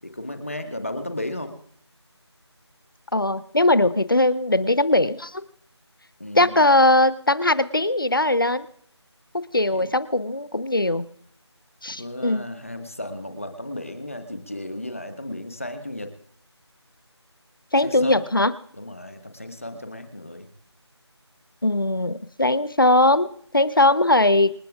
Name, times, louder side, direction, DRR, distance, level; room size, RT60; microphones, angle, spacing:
voice 1, 0.0-1.5 6.2-6.6 9.7-9.9 12.0-16.1 17.8-18.2 18.7-20.5, left 1 dB, 30° left, 7 dB, 1.4 m, -34 dB
voice 2, 3.1-5.4 6.3-8.7 9.3-11.0 11.8-12.4 17.7-18.5 21.6-24.5, left 2 dB, 50° left, 15 dB, 0.9 m, -20 dB
27.5 x 11.5 x 2.4 m, 0.63 s
figure-of-eight pair, 180°, 15 cm